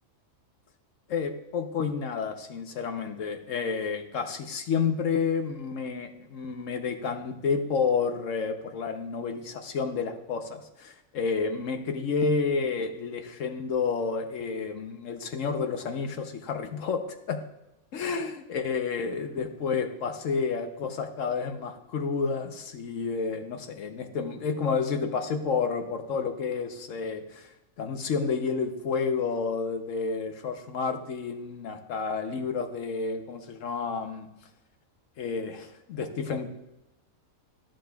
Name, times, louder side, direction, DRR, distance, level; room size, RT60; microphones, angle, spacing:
voice 1, 1.1-17.0 17.3-17.4 17.9-27.5 27.8-34.3 35.2-36.5, left 5 dB, 70° left, 6 dB, 1.1 m, -30 dB
13.5 x 7.6 x 2.3 m, 0.94 s
omnidirectional pair, 1.5 m